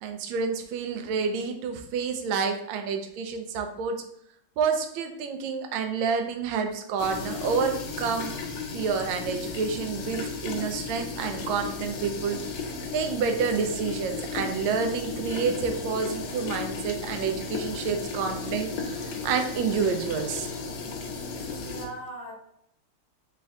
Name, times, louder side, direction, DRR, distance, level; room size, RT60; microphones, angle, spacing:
voice 1, 0.0-4.0 4.6-8.3 8.7-12.4 12.9-20.5, right 5 dB, 75° right, 5 dB, 1.3 m, -29 dB
sound 1, 7.0-21.9, left 4 dB, 70° left, 1.2 m, -35 dB
voice 2, 21.3-22.5, right 1 dB, 10° left, -7 dB, 0.6 m, -41 dB
3.5 x 3.3 x 3.5 m, 0.72 s
omnidirectional pair, 2.4 m